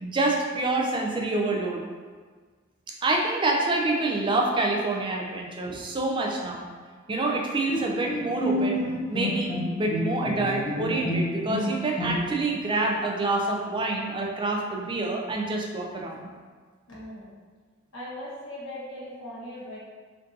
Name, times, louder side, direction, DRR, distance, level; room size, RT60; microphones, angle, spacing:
voice 1, 0.0-1.8 3.0-6.7 7.1-8.8 9.1-16.3, right 2 dB, 25° right, 0 dB, 0.4 m, -27 dB
Bowed string instrument, 7.7-12.5, left 1 dB, 35° left, 0.9 m, -29 dB
voice 2, 16.9-17.3 17.9-19.8, left 1 dB, 85° left, -8 dB, 1.2 m, -39 dB
4.4 x 2.6 x 2.6 m, 1.5 s
head